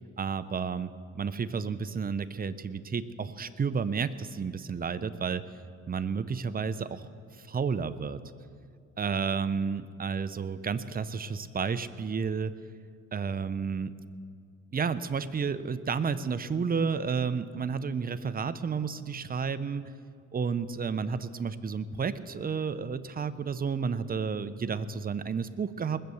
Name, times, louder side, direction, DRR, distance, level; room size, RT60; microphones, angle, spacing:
voice 1, 0.2-0.9 1.1-5.4 5.9-7.1 7.5-8.2 9.0-12.5 13.1-13.9 14.7-19.9 20.3-26.0, right 5 dB, 30° right, 13 dB, 0.7 m, -31 dB
20.0 x 7.9 x 7.0 m, 2.2 s
cardioid pair, 90°, 30 cm